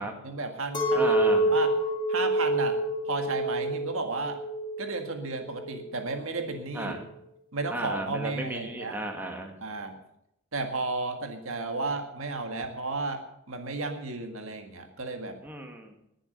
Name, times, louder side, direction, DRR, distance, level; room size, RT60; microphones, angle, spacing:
voice 1, 0.2-1.1 1.5-1.7 2.1-2.8 3.0-4.4 4.8-6.9 7.5-9.0 9.6-10.0 10.5-15.4, right 3 dB, 65° right, 5 dB, 1.8 m, -33 dB
Chink clink, 0.7-6.2, right 1 dB, 20° left, 1.7 m, -27 dB
voice 2, 1.0-1.5 6.7-7.0 7.7-9.5 15.4-15.9, right 1 dB, 10° right, 2 dB, 1.9 m, -34 dB
20.0 x 7.3 x 6.6 m, 0.79 s
head